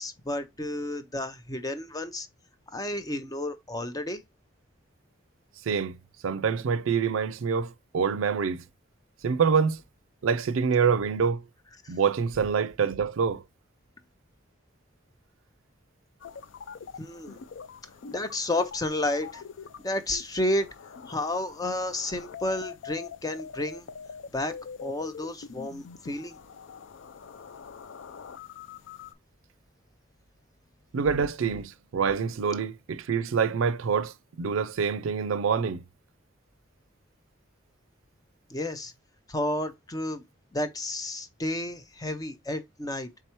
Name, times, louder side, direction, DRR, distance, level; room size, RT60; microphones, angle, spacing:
voice 1, 0.0-2.3 2.7-4.2 11.8-11.9 17.0-17.4 18.1-19.4 19.8-20.7 21.1-23.9 24.3-24.6 24.8-26.4 38.5-38.9 39.3-40.2 40.5-43.1, left 1 dB, 20° left, 0.6 m, -31 dB
voice 2, 5.7-6.0 6.2-8.6 9.2-9.8 10.2-11.4 11.9-13.4 30.9-35.8, right 6 dB, 80° right, 0.4 m, -26 dB
sound 1, 16.2-29.1, left 6 dB, 65° left, 0.4 m, -44 dB
4.5 x 3.5 x 2.9 m
head